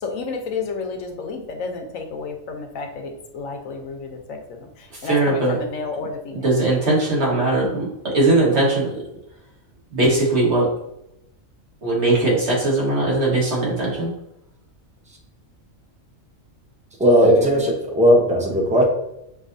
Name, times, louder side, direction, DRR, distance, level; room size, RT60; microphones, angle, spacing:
voice 1, 0.0-6.5 17.2-17.7, left 4 dB, 90° left, 4 dB, 1.1 m, -31 dB
voice 2, 5.0-5.6 6.4-8.9 9.9-10.7 11.8-14.1, right 2 dB, 60° right, -5 dB, 1.8 m, -19 dB
voice 3, 17.0-18.8, equal, 5° right, 0 dB, 0.6 m, -16 dB
6.5 x 2.7 x 2.6 m, 0.84 s
omnidirectional pair, 1.3 m